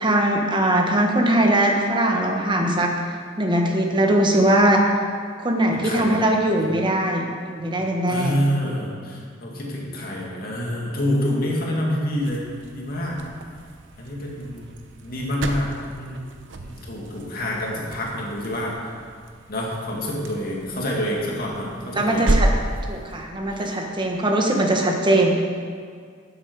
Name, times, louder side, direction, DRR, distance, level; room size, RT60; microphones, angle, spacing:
voice 1, 0.0-2.9 3.4-4.8 5.4-8.4 21.9-22.5 22.9-25.4, right 1 dB, 25° right, 1 dB, 1.2 m, -20 dB
voice 2, 5.7-6.2 6.5-6.6 7.6-7.8 8.1-12.4 12.7-13.2 14.0-14.7 15.0-16.2 16.6-19.0 19.5-22.3 22.7-22.8 23.5-23.7, equal, 50° left, -3 dB, 2.2 m, -27 dB
sound 1, 12.2-23.3, right 1 dB, 70° right, 0.8 m, -31 dB
12.0 x 7.8 x 4.7 m, 2.1 s
head